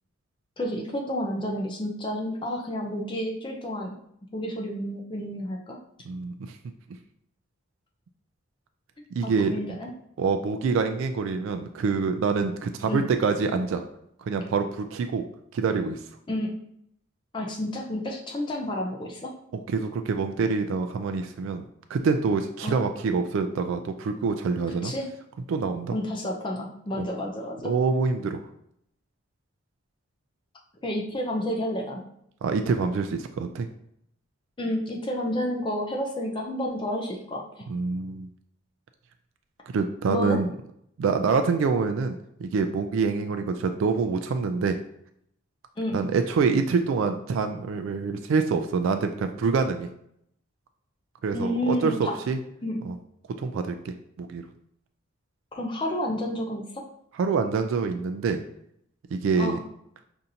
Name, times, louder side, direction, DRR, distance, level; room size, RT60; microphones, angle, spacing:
voice 1, 0.6-4.0 4.3-5.8 9.2-9.9 12.8-13.1 16.3-16.5 17.3-19.3 22.6-22.8 24.7-25.1 25.9-27.7 30.8-32.0 34.6-37.7 40.1-40.4 45.8-46.0 51.3-52.1 52.6-52.8 55.5-56.6 59.4-59.6, left 1 dB, 25° left, 0 dB, 0.4 m, -30 dB
voice 2, 6.1-6.6 9.1-9.6 10.2-13.8 14.2-15.2 15.5-16.0 19.7-24.9 25.5-26.0 27.0-27.1 27.6-28.4 32.4-33.7 37.7-38.3 39.7-40.5 41.0-44.8 45.9-49.9 51.2-52.4 52.8-53.0 53.4-54.4 57.2-58.4 59.1-59.6, right 4 dB, 70° right, 7 dB, 0.3 m, -26 dB
5.5 x 2.6 x 2.7 m, 0.73 s
head